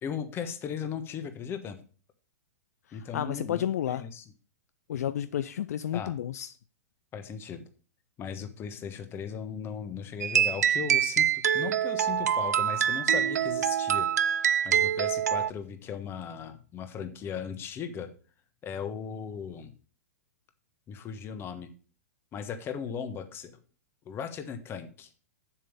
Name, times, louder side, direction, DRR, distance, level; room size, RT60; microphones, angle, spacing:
voice 1, 0.0-1.8 2.9-4.2 5.9-6.1 7.1-7.6 8.2-18.1 18.6-19.7 20.9-21.7 22.3-23.5 24.0-25.1, left 7 dB, 25° left, 1.2 m, -37 dB
voice 2, 2.9-4.0 4.9-6.5, left 10 dB, 65° left, 0.4 m, -31 dB
sound 1, 10.2-15.5, right 9 dB, 75° right, 0.4 m, -25 dB
7.2 x 7.1 x 5.2 m
figure-of-eight pair, 110°, 9 cm